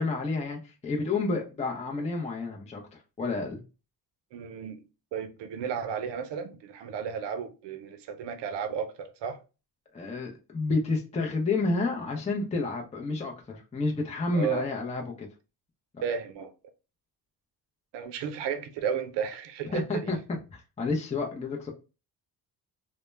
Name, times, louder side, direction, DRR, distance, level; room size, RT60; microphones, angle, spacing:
voice 1, 0.0-3.6 9.9-15.3 19.7-20.2 20.5-21.7, left 3 dB, 15° left, 0.5 m, -30 dB
voice 2, 4.3-4.8 5.1-9.4 14.3-14.7 16.0-16.5 17.9-20.1, right 7 dB, 90° right, 0.5 m, -33 dB
2.1 x 2.1 x 3.1 m
cardioid pair, 65°, 41 cm